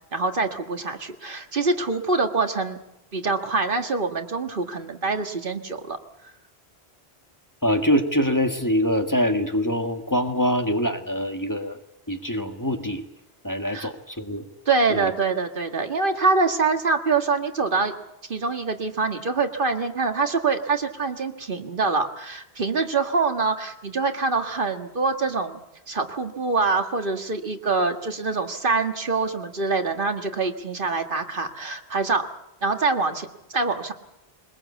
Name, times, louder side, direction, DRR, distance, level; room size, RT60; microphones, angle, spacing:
voice 1, 0.1-2.8 3.1-6.0 13.7-13.9 14.7-17.9 18.3-25.6 25.9-32.3 32.6-33.9, right 4 dB, 55° right, 6 dB, 1.9 m, -25 dB
voice 2, 7.6-11.8 12.1-13.0 13.4-14.5 14.9-15.1, equal, 20° left, 5 dB, 1.7 m, -24 dB
21.5 x 21.0 x 8.3 m, 0.88 s
omnidirectional pair, 1.1 m